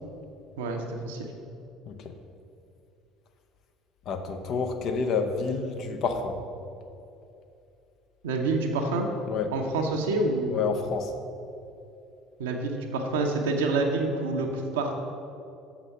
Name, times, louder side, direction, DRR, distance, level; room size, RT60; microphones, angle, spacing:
voice 1, 0.6-1.3 8.2-9.1 9.5-10.7 12.4-14.9, right 3 dB, 70° right, 3 dB, 0.8 m, -27 dB
voice 2, 4.1-6.4 9.3-9.5 10.5-11.1, left 5 dB, 50° left, 6 dB, 0.7 m, -29 dB
7.0 x 6.0 x 5.5 m, 2.7 s
figure-of-eight pair, 60°, 0 cm